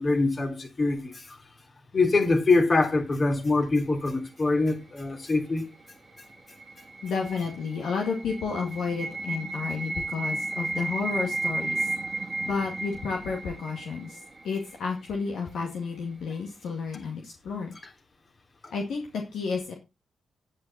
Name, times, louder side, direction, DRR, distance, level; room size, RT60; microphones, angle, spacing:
voice 1, 0.0-1.4 1.9-5.6 18.6-18.7, left 3 dB, 40° left, 3.3 m, -24 dB
sound 1, 5.8-14.8, right 2 dB, 40° right, 1.6 m, -34 dB
voice 2, 7.0-11.9 12.4-14.2 14.4-17.7 18.7-19.7, left 5 dB, 70° left, 2.2 m, -31 dB
9.6 x 9.3 x 4.2 m
hypercardioid pair, 45°, 0 cm